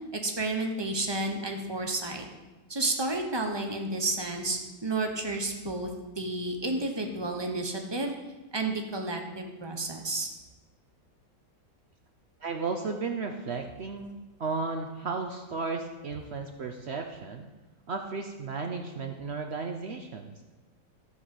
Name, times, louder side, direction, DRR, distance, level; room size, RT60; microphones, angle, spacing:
voice 1, 0.1-2.3 2.7-8.1 8.5-10.3, right 2 dB, 15° right, 3 dB, 0.9 m, -31 dB
voice 2, 12.4-17.5 17.9-20.3, right 4 dB, 80° right, 5 dB, 0.5 m, -34 dB
13.0 x 5.3 x 7.9 m, 1.1 s
omnidirectional pair, 2.3 m